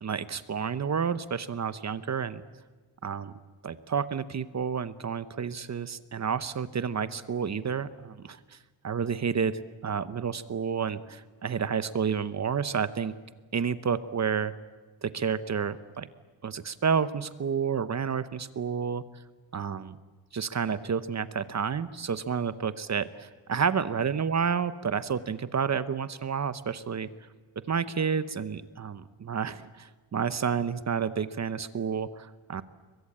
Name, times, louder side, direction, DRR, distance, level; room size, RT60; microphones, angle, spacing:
voice 1, 0.0-2.4 3.0-3.3 3.6-8.6 8.8-13.1 13.5-14.5 15.0-16.1 16.4-19.0 19.5-20.0 20.3-27.1 27.7-32.6, right 6 dB, 35° right, 14 dB, 0.8 m, -30 dB
30.0 x 22.5 x 8.8 m, 1.3 s
wide cardioid pair, 170°, 47 cm